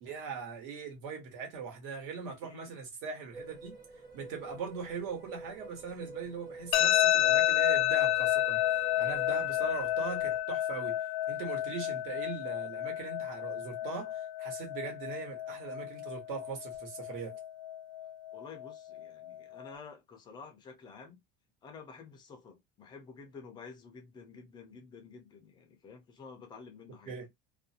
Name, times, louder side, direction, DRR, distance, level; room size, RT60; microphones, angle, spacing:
voice 1, 0.0-3.8 4.1-11.0 11.3-17.4 27.1-27.3, right 5 dB, 65° right, 1.3 m, -40 dB
voice 2, 2.4-2.8 18.3-21.2 21.6-27.3, left 5 dB, 15° left, 0.4 m, -50 dB
sound 1, 3.3-10.4, right 3 dB, 15° right, 0.8 m, -48 dB
sound 2, 6.7-19.7, left 13 dB, 85° left, 0.5 m, -31 dB
2.4 x 2.2 x 2.7 m
cardioid pair, 180°, 29 cm